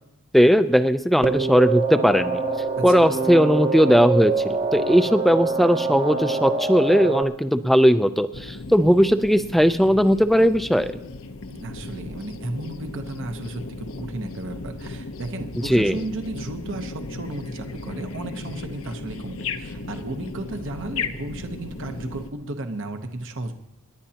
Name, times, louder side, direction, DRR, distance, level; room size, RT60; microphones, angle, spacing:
voice 1, 0.3-2.4 2.8-10.9 15.6-16.0, equal, ahead, 10 dB, 0.4 m, -18 dB
sound 1, 1.2-7.2, right 4 dB, 30° right, 0.9 m, -25 dB
voice 2, 2.8-3.1 11.5-23.5, right 2 dB, 55° right, 6 dB, 1.0 m, -34 dB
sound 2, 8.3-22.3, left 3 dB, 65° left, 0.8 m, -36 dB
27.5 x 11.5 x 2.9 m, 0.89 s
head